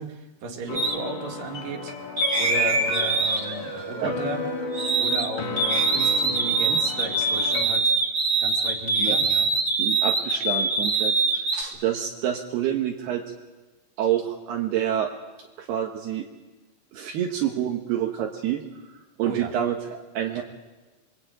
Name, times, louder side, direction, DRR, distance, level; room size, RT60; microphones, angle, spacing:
voice 1, 0.0-2.0 2.4-4.5 5.0-7.9 8.4-9.5 19.2-19.5, right 2 dB, 60° right, 3 dB, 4.0 m, -34 dB
sound 1, 0.7-7.7, left 4 dB, 50° left, 4.0 m, -34 dB
sound 2, 0.7-1.0 2.2-5.3 5.6-11.6, right 3 dB, 20° right, 2.4 m, -24 dB
voice 2, 9.8-13.2 14.0-15.1 15.6-16.3 16.9-18.6 18.9-20.4, right 10 dB, 75° right, 1 dB, 3.4 m, -28 dB
27.5 x 23.0 x 9.2 m, 1.2 s
omnidirectional pair, 4.8 m